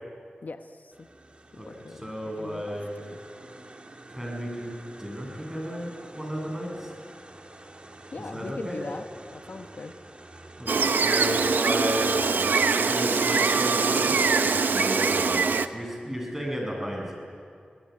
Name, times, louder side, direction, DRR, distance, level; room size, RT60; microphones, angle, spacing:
voice 1, 0.4-1.1 1.5-2.1 2.4-2.6 8.1-9.1 9.3-9.9, left 3 dB, 65° left, 7 dB, 1.0 m, -40 dB
sound 1, 0.9-15.6, right 2 dB, 35° right, 2.1 m, -47 dB
voice 2, 1.6-2.9 4.1-4.7 5.0-6.9 8.2-8.8 10.6-12.1 12.9-17.1, equal, 10° right, -1 dB, 7.5 m, -33 dB
Gull seagull, 10.7-15.7, right 4 dB, 85° right, 0.8 m, -23 dB
25.0 x 19.0 x 9.5 m, 2.3 s
wide cardioid pair, 70°, 3 cm